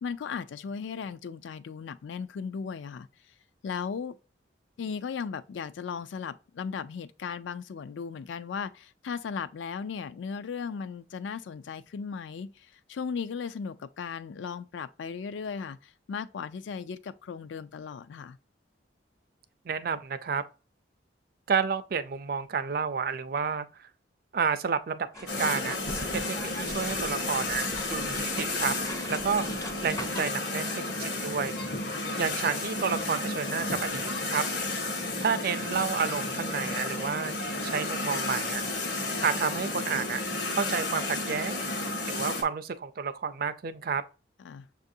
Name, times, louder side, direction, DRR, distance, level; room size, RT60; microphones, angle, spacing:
voice 1, 0.0-3.1 3.6-4.2 4.8-18.4 44.4-44.7, left 6 dB, 75° left, 0.3 m, -36 dB
voice 2, 19.7-20.4 21.5-23.9 24.3-25.8 26.1-28.7 29.1-31.6 32.2-34.5 35.2-37.3 37.6-38.7 39.2-40.2 40.5-41.6 42.0-44.0, right 6 dB, 50° right, 0.4 m, -30 dB
sound 1, 25.1-30.2, left 1 dB, 15° left, 0.4 m, -40 dB
sound 2, 25.3-42.4, left 2 dB, 60° left, 1.0 m, -32 dB
6.6 x 2.5 x 2.6 m
head